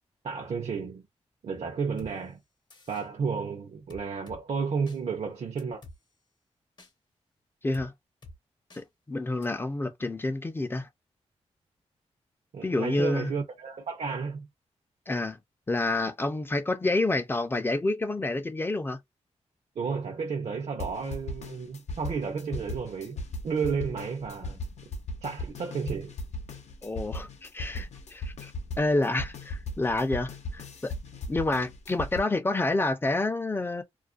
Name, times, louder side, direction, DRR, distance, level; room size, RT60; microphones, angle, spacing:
voice 1, 0.2-1.1 1.4-2.4 2.9-5.8 12.5-14.5 19.8-23.2 23.4-24.6 25.2-26.1, right 5 dB, 60° right, 0.7 m, -32 dB
sound 1, 2.0-2.1 2.7-3.1 3.9-4.4 4.9-5.0 5.6-6.0 6.8-6.9 7.7-7.9 8.2-8.4 8.7-8.8 9.4-9.5, left 2 dB, 40° left, 0.8 m, -48 dB
voice 2, 8.8-10.9 12.6-13.3 15.1-15.4 15.7-19.0 26.8-28.5 28.8-30.9 31.3-33.8, left 2 dB, 20° left, 0.5 m, -28 dB
sound 2, 20.8-32.2, left 2 dB, 70° left, 0.7 m, -38 dB
2.4 x 2.1 x 2.4 m
wide cardioid pair, 100°, 12 cm